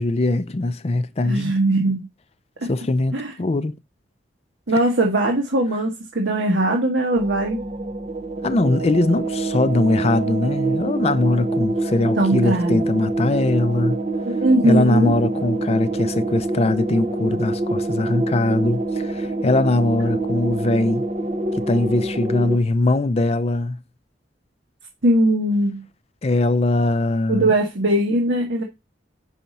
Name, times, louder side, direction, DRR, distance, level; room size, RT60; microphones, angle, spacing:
voice 1, 0.0-1.5 2.6-3.7 8.4-14.0 14.6-21.0 21.6-23.8 26.2-27.5, left 2 dB, 35° left, 0.5 m, -21 dB
voice 2, 1.2-2.1 2.6-2.7 3.1-3.3 4.7-7.6 12.2-12.8 14.2-15.2 25.0-25.8 27.3-28.6, right 1 dB, 85° right, 1.3 m, -20 dB
sound 1, 7.1-22.6, right 2 dB, 40° right, 0.7 m, -25 dB
5.6 x 4.2 x 5.2 m
head